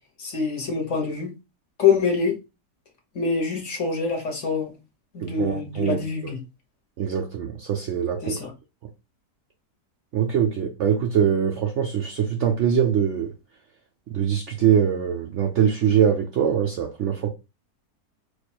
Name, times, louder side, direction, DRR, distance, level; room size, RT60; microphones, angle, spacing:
voice 1, 0.2-1.3 1.8-2.4 3.1-4.7 5.1-6.4 8.2-8.5, left 5 dB, 50° left, 1.4 m, -25 dB
voice 2, 5.2-6.3 7.0-8.3 10.1-13.3 14.1-17.3, right 8 dB, 70° right, 0.7 m, -23 dB
4.5 x 2.4 x 4.3 m
omnidirectional pair, 1.8 m